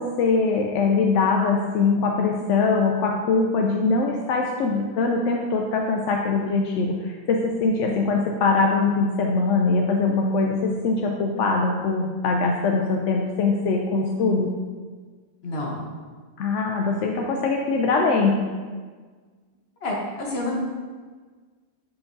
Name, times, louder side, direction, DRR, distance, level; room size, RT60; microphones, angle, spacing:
voice 1, 0.0-14.5 16.4-18.4, left 4 dB, 70° left, 1 dB, 0.7 m, -22 dB
voice 2, 15.4-15.8 19.8-20.6, left 2 dB, 45° left, -1 dB, 1.2 m, -28 dB
8.6 x 4.6 x 2.6 m, 1.5 s
omnidirectional pair, 1.6 m